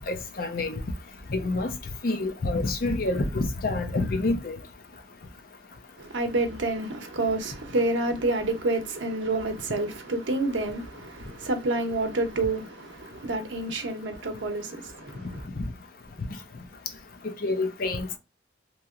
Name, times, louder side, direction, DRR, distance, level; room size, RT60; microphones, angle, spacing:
voice 1, 0.1-0.8 1.3-1.7 2.0-4.6 17.4-18.2, left 2 dB, 50° left, 0.6 m, -27 dB
voice 2, 6.0-15.4, right 2 dB, 85° right, 0.7 m, -28 dB
2.9 x 2.8 x 2.4 m
head